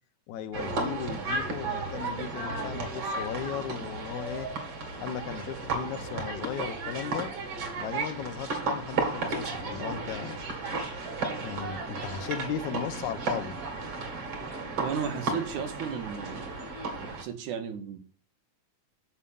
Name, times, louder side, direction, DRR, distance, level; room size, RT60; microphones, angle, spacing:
voice 1, 0.3-4.5 5.0-7.3 7.8-10.4 11.4-13.5, left 9 dB, 80° left, 2.2 m, -36 dB
sound 1, 0.5-17.2, right 3 dB, 50° right, 3.3 m, -34 dB
voice 2, 14.8-16.5 17.0-18.0, right 7 dB, 90° right, 2.9 m, -34 dB
7.4 x 7.0 x 7.1 m
omnidirectional pair, 3.4 m